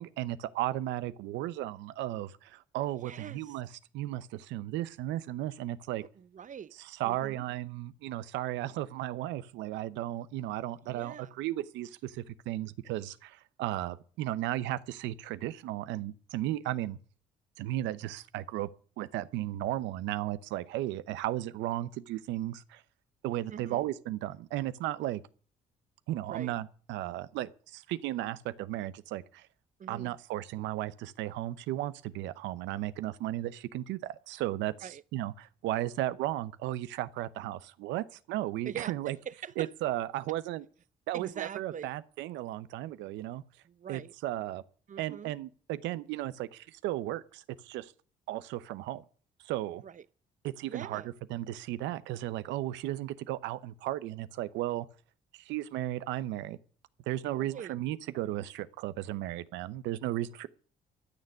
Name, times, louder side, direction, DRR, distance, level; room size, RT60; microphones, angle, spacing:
voice 1, 0.0-3.7 3.9-6.0 7.0-17.0 17.6-18.7 19.0-22.8 23.2-25.2 26.1-29.5 29.9-39.2 39.6-40.6 41.1-43.4 43.9-44.6 45.0-47.9 48.3-49.0 49.4-49.8 50.4-51.0 51.3-54.9 55.4-56.6 57.1-60.5, right 14 dB, 85° right, 0.8 m, -35 dB
voice 2, 3.0-3.6 6.0-6.7 7.0-7.4 10.9-11.3 23.5-23.8 26.3-26.5 29.8-30.1 34.8-35.0 38.6-39.7 41.1-41.9 43.6-44.1 44.9-45.3 49.8-50.0 50.6-51.1 57.4-57.8, right 8 dB, 45° right, 0.8 m, -43 dB
13.5 x 6.6 x 9.3 m
supercardioid pair, 65°, 18 cm